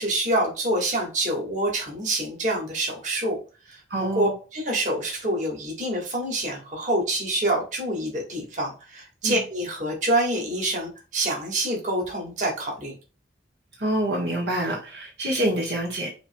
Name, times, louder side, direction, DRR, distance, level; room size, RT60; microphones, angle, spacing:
voice 1, 0.0-3.4 3.7-3.8 4.2-12.9, right 1 dB, 40° right, -1 dB, 1.7 m, -26 dB
voice 2, 3.9-4.3 9.2-9.4 13.8-16.1, right 1 dB, 70° right, -2 dB, 1.3 m, -26 dB
6.6 x 3.0 x 2.2 m, 0.34 s
head